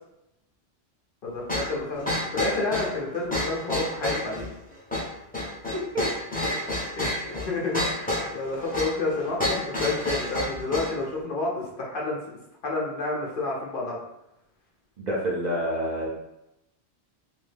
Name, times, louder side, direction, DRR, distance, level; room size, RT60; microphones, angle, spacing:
voice 1, 1.2-4.4 7.0-12.2 12.6-14.0, left 3 dB, 55° left, -2 dB, 0.8 m, -30 dB
sound 1, 1.5-11.0, left 1 dB, 10° left, 0.6 m, -30 dB
voice 2, 5.7-6.0 15.0-16.1, equal, 45° right, -4 dB, 0.7 m, -28 dB
2.7 x 2.7 x 3.3 m, 0.86 s
omnidirectional pair, 1.1 m